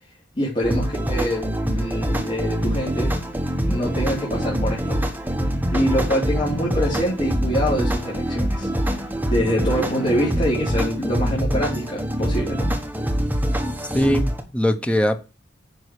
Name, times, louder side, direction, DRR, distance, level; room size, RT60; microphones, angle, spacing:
voice 1, 0.3-3.1 3.7-5.0 5.7-8.7 9.3-12.7, equal, 35° left, 3.4 m, -25 dB
sound 1, 0.6-14.4, equal, 10° right, 1.2 m, -24 dB
voice 2, 13.9-15.2, equal, 5° left, 0.9 m, -21 dB
9.7 x 5.5 x 4.8 m
head